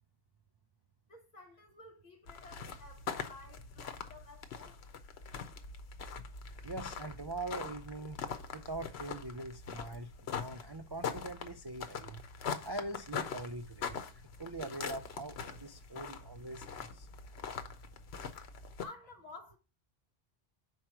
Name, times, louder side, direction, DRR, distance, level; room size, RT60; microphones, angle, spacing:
voice 1, 1.1-4.8 18.8-19.6, left 2 dB, 40° left, 1.5 m, -53 dB
sound 1, 2.3-18.8, left 6 dB, 85° left, 1.0 m, -43 dB
voice 2, 6.6-12.2 12.6-14.0 14.4-17.1, right 2 dB, 40° right, 0.4 m, -43 dB
4.7 x 4.5 x 6.0 m
omnidirectional pair, 1.1 m